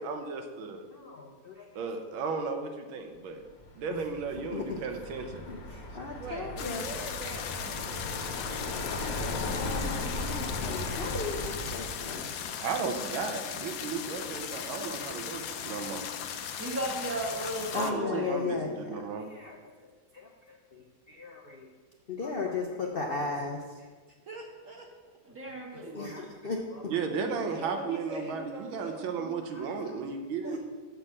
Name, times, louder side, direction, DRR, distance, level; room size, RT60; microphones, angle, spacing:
voice 1, 0.0-0.8 1.7-3.4 3.8-5.4 12.6-16.0 17.7-19.3 26.9-30.6, right 5 dB, 85° right, 5 dB, 1.7 m, -34 dB
voice 2, 0.9-1.8 3.9-4.1 4.5-4.8 5.5-7.6 8.1-8.7 9.6-12.3 17.7-19.6 20.1-21.7 22.1-23.9 25.7-27.0 27.5-27.6 28.2-28.3 29.2-30.2 30.4-30.6, left 4 dB, 90° left, 0 dB, 0.5 m, -37 dB
Car passing by, 3.6-12.2, left 2 dB, 50° left, 1.4 m, -37 dB
voice 3, 6.2-8.1 14.4-14.9 24.3-24.9 27.2-29.1, right 3 dB, 60° right, 1 dB, 0.9 m, -42 dB
sound 1, 6.6-17.9, left 8 dB, 70° left, 1.0 m, -38 dB
voice 4, 16.6-18.3 25.2-26.2, right 1 dB, 10° right, -2 dB, 1.1 m, -35 dB
6.6 x 5.8 x 7.3 m, 1.4 s
omnidirectional pair, 2.1 m